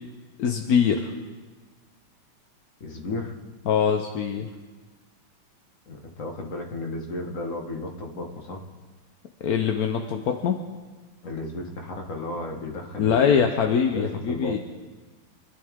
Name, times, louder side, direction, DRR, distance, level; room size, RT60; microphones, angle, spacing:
voice 1, 0.4-1.1 3.7-4.5 9.4-10.6 13.0-14.6, left 7 dB, 60° left, 4 dB, 1.1 m, -23 dB
voice 2, 2.8-3.4 5.9-8.6 11.2-13.6 13.9-14.6, left 2 dB, 40° left, 1 dB, 1.8 m, -34 dB
24.5 x 11.5 x 3.6 m, 1.3 s
omnidirectional pair, 2.2 m